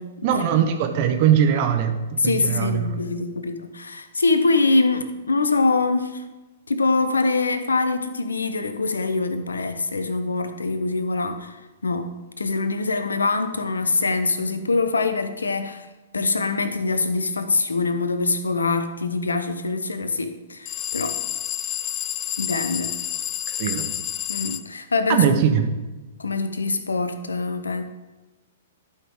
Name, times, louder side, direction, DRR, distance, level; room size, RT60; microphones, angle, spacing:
voice 1, 0.2-3.0 23.5-23.9 25.1-25.7, right 8 dB, 45° right, 6 dB, 1.1 m, -21 dB
voice 2, 2.2-6.2 6.7-12.1 12.4-15.9 16.1-21.1 22.4-22.9 24.3-25.2 26.2-27.8, left 3 dB, 80° left, 9 dB, 0.8 m, -24 dB
sound 1, 20.7-24.6, left 12 dB, 30° left, 0.4 m, -29 dB
12.0 x 5.7 x 3.7 m, 1.1 s
figure-of-eight pair, 110°, 0 cm